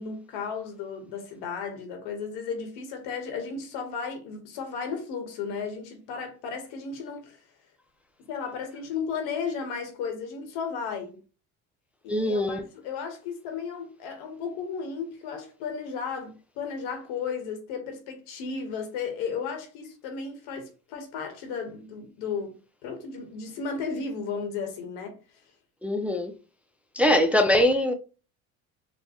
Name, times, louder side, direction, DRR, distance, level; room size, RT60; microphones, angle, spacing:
voice 1, 0.0-7.4 8.2-11.2 12.0-22.5 22.8-25.2, left 5 dB, 85° left, 1.2 m, -34 dB
voice 2, 12.1-12.6 25.8-26.3 27.0-27.9, left 1 dB, 5° right, 0.4 m, -22 dB
4.4 x 2.2 x 2.9 m
supercardioid pair, 95°, 38 cm